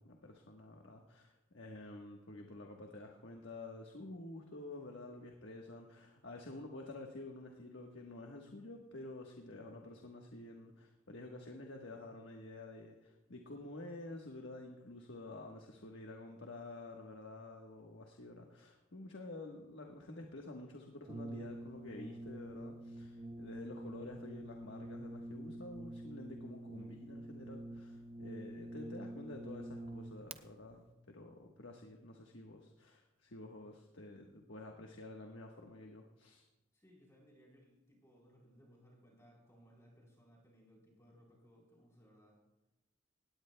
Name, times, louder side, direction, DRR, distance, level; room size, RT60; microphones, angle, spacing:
voice 1, 0.0-36.4, left 2 dB, 75° left, 1 dB, 1.3 m, -50 dB
Brass instrument, 21.0-30.4, right 1 dB, 30° right, 0.6 m, -47 dB
voice 2, 36.7-42.3, equal, 15° left, -3 dB, 4.0 m, -64 dB
18.0 x 17.5 x 2.3 m, 0.97 s
head